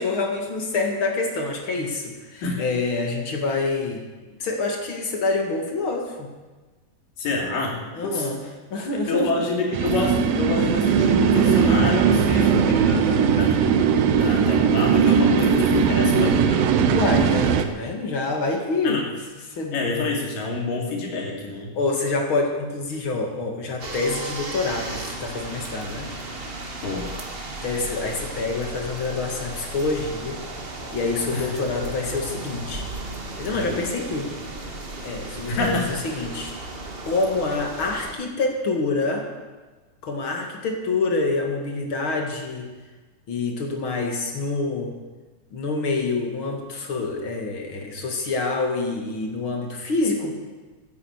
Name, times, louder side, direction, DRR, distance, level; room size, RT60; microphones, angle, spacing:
voice 1, 0.0-4.0 4.4-6.3 7.9-8.4 8.7-9.3 16.9-19.1 19.5-20.1 21.8-26.1 27.6-30.4 30.9-32.9 33.4-34.7 35.0-36.6 37.0-39.3 40.0-42.7 43.3-45.0 45.5-50.3, left 3 dB, 40° left, 2 dB, 2.5 m, -26 dB
voice 2, 7.2-8.3 8.9-13.6 14.2-16.8 18.8-19.0 19.7-21.8 26.8-27.1 31.3-31.5 33.5-33.8 35.5-36.0, left 3 dB, 75° left, 0 dB, 4.4 m, -27 dB
sound 1, 9.7-17.7, right 6 dB, 90° right, 2.8 m, -19 dB
sound 2, 23.8-38.1, right 2 dB, 55° right, 0.6 m, -35 dB
15.0 x 11.0 x 8.2 m, 1.3 s
omnidirectional pair, 3.9 m